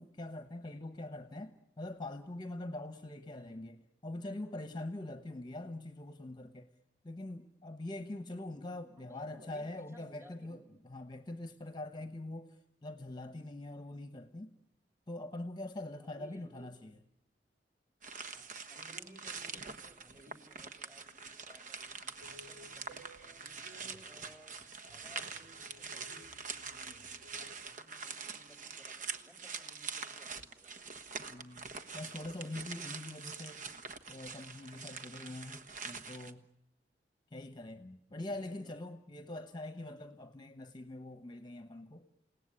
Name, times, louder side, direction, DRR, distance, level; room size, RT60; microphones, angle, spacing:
voice 1, 0.0-6.7 7.0-14.6 15.1-16.9 31.2-31.7 31.9-33.6 34.1-36.4 37.3-42.1, left 2 dB, 25° left, 9 dB, 1.1 m, -44 dB
voice 2, 3.4-3.7 9.0-10.7 11.9-12.1 16.0-16.9 18.3-23.0 23.4-24.6 24.9-30.8 38.3-38.8, right 1 dB, 15° right, 5 dB, 3.6 m, -59 dB
sound 1, 18.0-36.3, right 5 dB, 50° right, 1.3 m, -45 dB
sound 2, 22.2-27.5, equal, 90° right, 4.0 m, -59 dB
29.0 x 18.0 x 9.9 m, 0.82 s
head